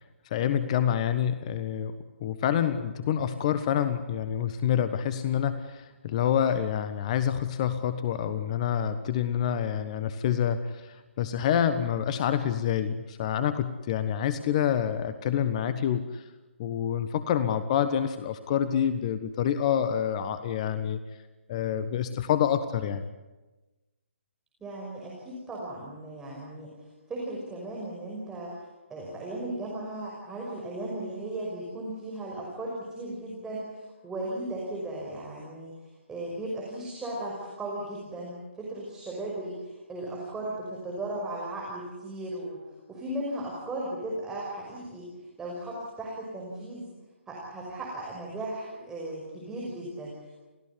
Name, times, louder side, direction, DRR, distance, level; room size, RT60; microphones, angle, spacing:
voice 1, 0.3-1.9 2.2-16.2 16.6-21.0 21.5-23.0, left 9 dB, 30° left, 11 dB, 1.3 m, -27 dB
voice 2, 24.6-26.8 27.1-28.6 28.9-33.6 34.0-35.7 36.1-42.6 42.9-45.1 45.4-46.9 47.3-50.3, right 1 dB, 10° right, -4 dB, 5.7 m, -36 dB
28.5 x 17.0 x 9.8 m, 1.2 s
figure-of-eight pair, 140°, 7 cm